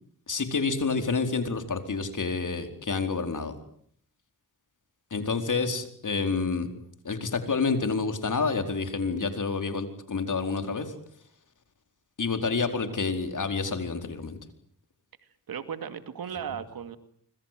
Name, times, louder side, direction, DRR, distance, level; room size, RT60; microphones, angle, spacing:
voice 1, 0.3-3.5 5.1-6.7 7.0-10.9 12.2-14.4, left 4 dB, 60° left, 7 dB, 4.5 m, -28 dB
voice 2, 15.5-17.0, right 8 dB, 85° right, 10 dB, 2.4 m, -36 dB
26.0 x 25.5 x 7.7 m, 0.63 s
cardioid pair, 70°, 35 cm